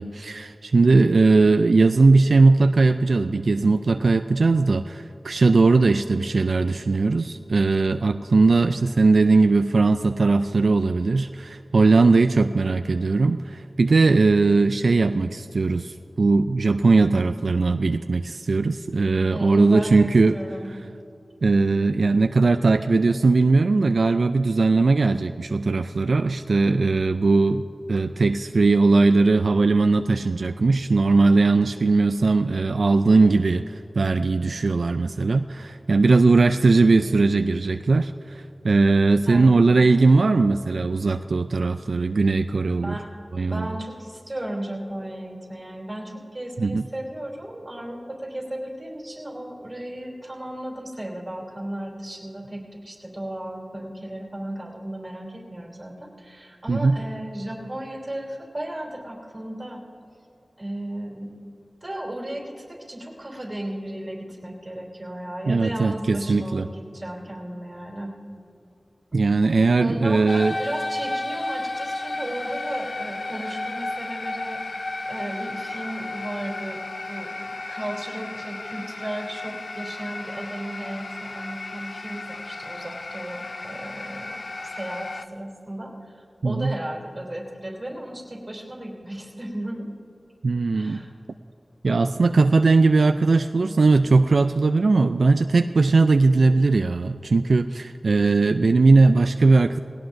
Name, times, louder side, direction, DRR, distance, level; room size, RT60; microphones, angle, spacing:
voice 1, 0.0-20.4 21.4-27.6 27.9-43.0 43.3-43.7 46.6-46.8 56.7-57.0 65.5-66.7 69.1-70.5 86.4-86.7 90.4-91.0 91.8-99.8, right 3 dB, 75° right, 8 dB, 0.3 m, -19 dB
voice 2, 19.3-20.7 39.2-40.2 42.6-43.1 43.5-59.8 60.6-61.4 61.8-68.1 69.1-69.2 69.8-76.8 77.1-89.9 90.7-91.1, right 1 dB, 25° right, -2 dB, 3.1 m, -35 dB
sound 1, 70.3-85.2, left 2 dB, 60° left, 0.5 m, -33 dB
19.5 x 17.0 x 2.6 m, 2.7 s
wide cardioid pair, 85°, 0 cm